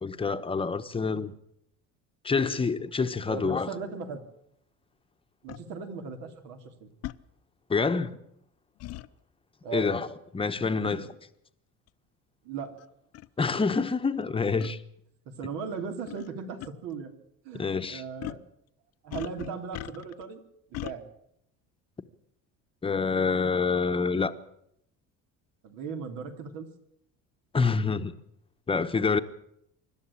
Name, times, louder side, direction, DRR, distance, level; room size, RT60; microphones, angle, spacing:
voice 1, 0.0-1.3 2.2-3.7 7.7-8.2 9.7-10.1 10.3-11.1 13.4-14.8 17.5-18.0 22.8-24.3 27.5-28.1 28.7-29.2, left 4 dB, 15° left, 1.0 m, -27 dB
voice 2, 3.3-4.2 5.4-6.9 9.6-10.0 10.7-11.1 12.4-12.7 15.3-17.1 17.4-18.4 19.0-20.4 20.8-21.1 25.6-26.7, right 5 dB, 80° right, 3.4 m, -37 dB
sound 1, 5.5-5.6 7.0-7.2 8.8-9.1 10.8-11.1 11.9-12.0 12.8-12.9 13.1-13.3 14.6-14.7 16.1-16.3 16.6-16.7 18.2-18.5 19.1-20.2 20.7-21.0, left 14 dB, 50° left, 0.7 m, -38 dB
25.5 x 12.0 x 8.6 m
cardioid pair, 140°, 32 cm